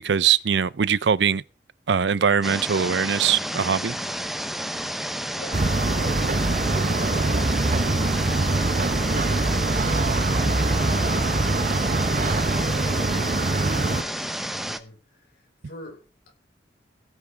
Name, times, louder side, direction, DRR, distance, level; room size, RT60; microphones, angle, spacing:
voice 1, 0.0-1.4 1.9-4.0, right 7 dB, 80° right, 0.5 m, -21 dB
sound 1, 2.4-14.8, equal, ahead, 0.8 m, -31 dB
voice 2, 5.3-16.3, left 1 dB, 60° left, 5.2 m, -44 dB
sound 2, 5.5-14.0, right 2 dB, 45° right, 0.8 m, -23 dB
17.0 x 6.0 x 5.0 m
head